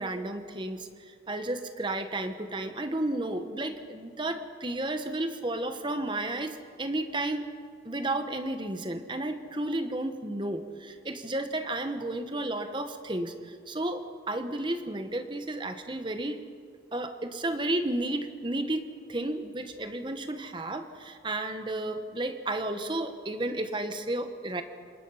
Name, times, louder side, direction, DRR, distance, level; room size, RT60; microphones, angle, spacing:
voice 1, 0.0-7.5 7.8-16.5 16.9-24.6, right 1 dB, 25° right, 8 dB, 1.2 m, -32 dB
27.0 x 20.0 x 5.7 m, 2.1 s
head